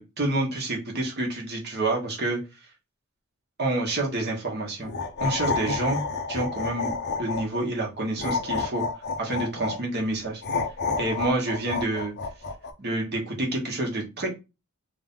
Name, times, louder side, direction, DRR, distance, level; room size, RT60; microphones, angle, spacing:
voice 1, 0.0-2.4 3.6-4.9 5.2-6.0 6.3-6.9 7.2-8.8 9.2-10.4 11.0-12.1 12.8-14.3, right 2 dB, 45° right, 0 dB, 1.2 m, -28 dB
sound 1, 4.8-7.7 8.2-9.8 10.4-12.7, left 4 dB, 50° left, 0.6 m, -29 dB
3.3 x 2.7 x 3.5 m, 0.26 s
head